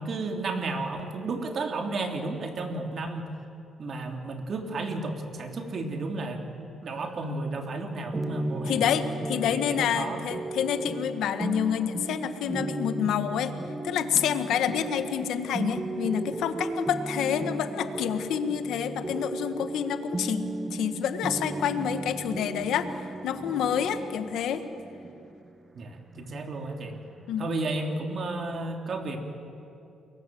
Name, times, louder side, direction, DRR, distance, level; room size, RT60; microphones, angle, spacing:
voice 1, 0.0-3.3 3.8-8.8 9.3-10.2 25.7-27.0 27.4-29.2, right 2 dB, 50° right, 3 dB, 3.4 m, -33 dB
sound 1, 8.1-27.7, right 2 dB, 25° right, 1.2 m, -35 dB
voice 2, 8.6-13.5 13.8-24.6 27.3-27.5, left 9 dB, 80° left, 8 dB, 1.6 m, -28 dB
29.0 x 22.0 x 7.8 m, 2.7 s
cardioid pair, 90°, 0 cm